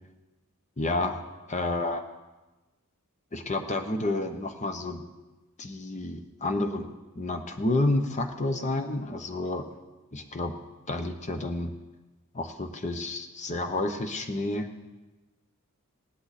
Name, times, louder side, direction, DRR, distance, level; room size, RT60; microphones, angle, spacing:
voice 1, 0.8-2.0 3.3-5.0 5.6-6.9 7.1-9.7 10.1-10.5 10.9-11.7 12.3-14.7, left 2 dB, 30° left, 7 dB, 1.0 m, -30 dB
17.5 x 11.0 x 4.2 m, 1.1 s
head